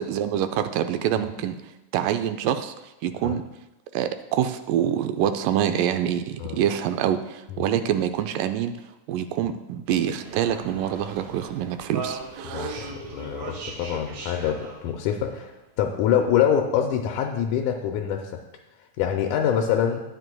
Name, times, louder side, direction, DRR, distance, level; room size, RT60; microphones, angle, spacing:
voice 1, 0.0-1.6 1.9-2.7 3.0-3.4 3.9-8.7 9.1-12.9, right 10 dB, 85° right, 8 dB, 2.1 m, -26 dB
sound 1, 9.9-15.5, right 4 dB, 60° right, 2.5 m, -38 dB
voice 2, 12.5-18.4 19.0-20.0, left 9 dB, 80° left, 2 dB, 2.0 m, -25 dB
12.5 x 9.0 x 2.2 m, 0.97 s
omnidirectional pair, 3.8 m